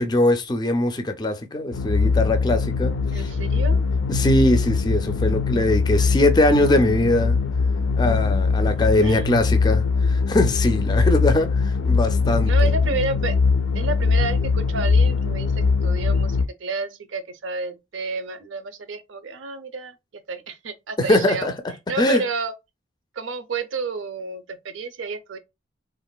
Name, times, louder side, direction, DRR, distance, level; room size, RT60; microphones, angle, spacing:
voice 1, 0.0-3.3 4.1-7.4 8.0-12.5 21.1-21.5 22.0-22.2, left 1 dB, 20° left, 0.4 m, -21 dB
sound 1, 1.7-16.5, left 4 dB, 85° left, 0.4 m, -21 dB
voice 2, 3.1-3.9 9.0-9.3 12.4-13.4 13.7-19.9 20.3-21.5 21.9-22.5 23.1-25.4, right 4 dB, 90° right, 0.5 m, -30 dB
3.7 x 2.4 x 2.2 m
head